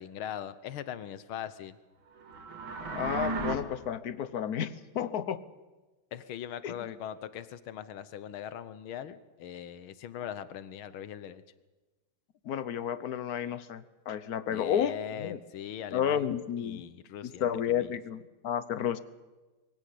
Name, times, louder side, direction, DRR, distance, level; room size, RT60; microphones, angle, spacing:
voice 1, 0.0-1.8 6.1-11.4 14.5-17.9, left 10 dB, 80° left, 14 dB, 1.7 m, -41 dB
sound 1, 2.2-3.6, right 4 dB, 70° right, 2.4 m, -35 dB
voice 2, 2.8-5.4 6.6-6.9 12.4-15.4 15.9-16.8 17.2-19.0, left 9 dB, 55° left, 15 dB, 1.1 m, -32 dB
23.0 x 16.0 x 8.5 m, 1.2 s
omnidirectional pair, 2.3 m